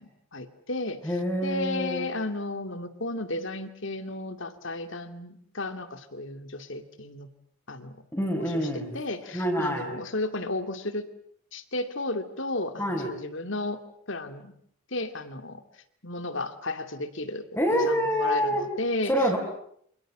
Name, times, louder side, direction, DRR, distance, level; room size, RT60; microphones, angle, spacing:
voice 1, 0.0-1.0 1.4-7.3 7.7-8.0 8.4-11.0 11.5-13.8 14.1-14.5 14.9-15.6 16.0-17.4 17.7-19.1, left 2 dB, 55° left, 10 dB, 2.6 m, -33 dB
voice 2, 1.0-2.1 8.1-8.9 9.3-9.9 12.8-13.1 17.6-18.6 19.1-19.4, equal, 10° left, -4 dB, 4.9 m, -26 dB
29.0 x 27.5 x 7.5 m, 0.66 s
head